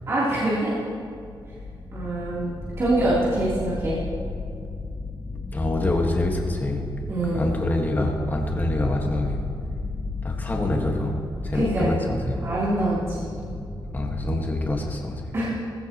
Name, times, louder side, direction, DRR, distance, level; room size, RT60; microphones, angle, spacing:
voice 1, 0.1-0.7 1.9-4.0 7.1-7.6 11.5-12.0 12.4-13.4 15.3-15.5, right 1 dB, 35° right, -10 dB, 3.4 m, -24 dB
sound 1, 0.7-14.9, left 3 dB, ahead, 2.9 m, -34 dB
voice 2, 5.5-6.8 7.3-9.4 10.2-11.2 11.4-12.5 13.9-15.3, left 1 dB, 20° left, 1 dB, 1.6 m, -26 dB
19.5 x 16.0 x 3.0 m, 2.4 s
wide cardioid pair, 140°, 8 cm